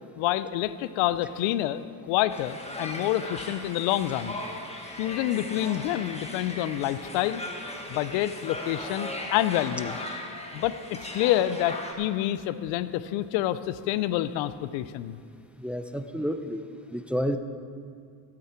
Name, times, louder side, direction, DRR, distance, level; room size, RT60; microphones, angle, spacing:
voice 1, 0.2-4.4 5.0-7.4 7.9-10.0 10.5-15.2, left 13 dB, 80° left, 15 dB, 0.6 m, -28 dB
sound 1, 2.3-11.9, left 1 dB, 15° left, 1.7 m, -38 dB
voice 2, 15.6-16.6 16.9-17.4, equal, 5° right, 8 dB, 0.7 m, -30 dB
16.0 x 8.7 x 4.4 m, 2.3 s
supercardioid pair, 80°, 44 cm